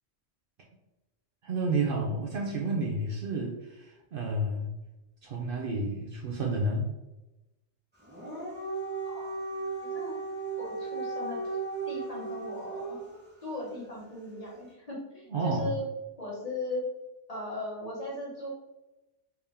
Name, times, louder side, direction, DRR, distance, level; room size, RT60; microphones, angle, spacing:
voice 1, 1.4-4.7 5.2-6.9 15.3-15.7, right 2 dB, 60° right, -1 dB, 0.7 m, -30 dB
Dog, 8.0-13.2, right 4 dB, 10° right, 0.9 m, -36 dB
voice 2, 9.0-9.3 9.8-10.1 10.6-11.4 11.9-13.0 13.4-15.8 16.2-16.8 17.3-18.5, left 1 dB, 35° left, -5 dB, 1.1 m, -37 dB
3.5 x 2.8 x 3.4 m, 1.0 s
omnidirectional pair, 1.2 m